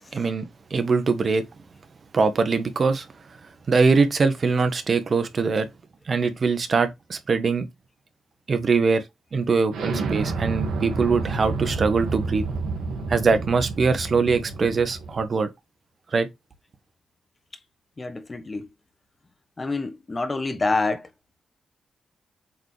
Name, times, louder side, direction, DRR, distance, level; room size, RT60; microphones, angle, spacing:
voice 1, 0.1-1.4 2.1-3.1 3.7-5.7 6.1-7.7 8.5-9.0 9.3-12.4 13.1-15.5 16.1-16.3, right 4 dB, 55° right, 1.5 m, -22 dB
Explosion, 9.7-15.2, right 3 dB, 85° right, 2.0 m, -29 dB
voice 2, 18.0-18.7 19.6-21.1, left 3 dB, 35° left, 1.4 m, -27 dB
7.9 x 4.1 x 3.4 m
supercardioid pair, 40°, 0 cm